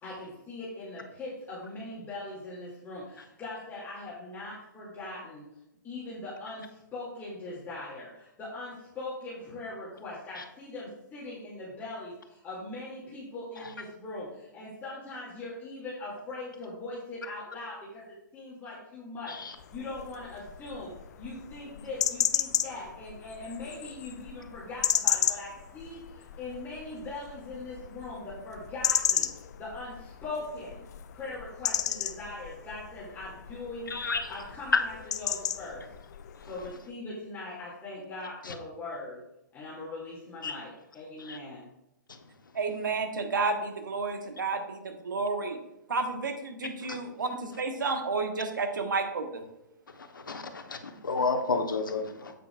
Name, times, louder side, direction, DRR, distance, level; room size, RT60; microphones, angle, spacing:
voice 1, 0.0-5.4 5.8-29.3 29.6-30.8 31.1-33.9 34.3-35.8 36.5-39.2 39.5-41.7, left 2 dB, 20° left, -7 dB, 2.4 m, -41 dB
sound 1, 19.6-36.7, left 10 dB, 55° left, 0.6 m, -34 dB
voice 2, 33.9-34.3 40.4-40.6 41.3-41.4 46.9-47.0 50.3-50.8 51.0-52.3, left 4 dB, 80° left, 7 dB, 1.1 m, -30 dB
voice 3, 42.5-45.6 45.9-49.4, right 4 dB, 70° right, 6 dB, 1.3 m, -31 dB
8.7 x 8.2 x 2.4 m, 0.87 s
figure-of-eight pair, 120°, 11 cm